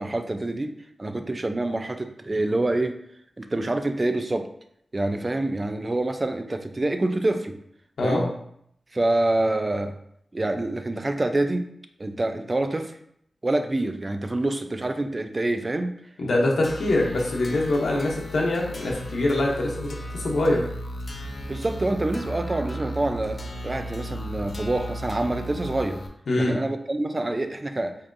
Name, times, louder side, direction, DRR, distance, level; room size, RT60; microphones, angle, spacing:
voice 1, 0.0-3.0 3.4-4.5 4.9-7.6 8.0-8.3 8.9-9.9 10.3-11.7 12.0-13.0 13.4-15.9 21.5-26.0 26.4-28.0, right 2 dB, 35° right, 7 dB, 0.4 m, -26 dB
voice 2, 8.0-8.3 16.2-20.6 26.3-26.6, left 2 dB, 85° left, -2 dB, 0.8 m, -24 dB
sound 1, 16.6-26.1, equal, 50° left, 0.5 m, -35 dB
4.4 x 2.7 x 2.5 m, 0.71 s
wide cardioid pair, 70°, 0 cm